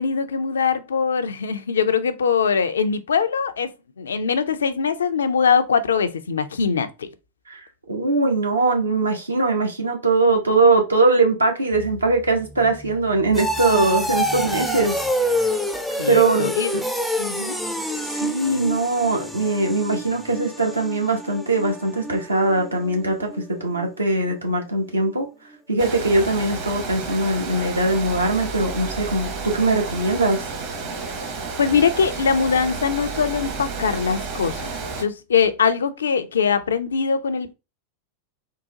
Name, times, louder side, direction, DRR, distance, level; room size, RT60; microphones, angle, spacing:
voice 1, 0.0-3.7 4.0-7.1 16.0-16.7 17.2-17.6 31.6-37.5, left 6 dB, 70° left, 0.4 m, -22 dB
voice 2, 7.5-15.5 16.1-16.5 18.0-23.3 23.6-25.3 25.7-30.4, right 3 dB, 80° right, 0.9 m, -21 dB
sound 1, 11.7-24.4 24.7-25.1 25.5-25.6, equal, ahead, 0.4 m, -28 dB
Water, 25.8-35.0, right 4 dB, 40° right, 0.9 m, -31 dB
3.7 x 2.1 x 2.8 m
figure-of-eight pair, 90°, 0 cm